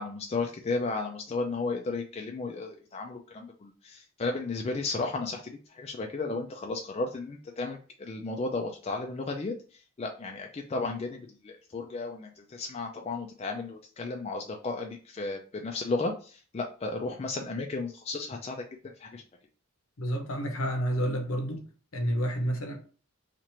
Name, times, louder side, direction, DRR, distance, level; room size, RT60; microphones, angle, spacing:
voice 1, 0.0-9.5 10.0-19.2, left 3 dB, 30° left, 0.3 m, -34 dB
voice 2, 20.0-21.6 21.9-22.8, equal, 70° left, 0.8 m, -29 dB
3.0 x 2.5 x 4.2 m
head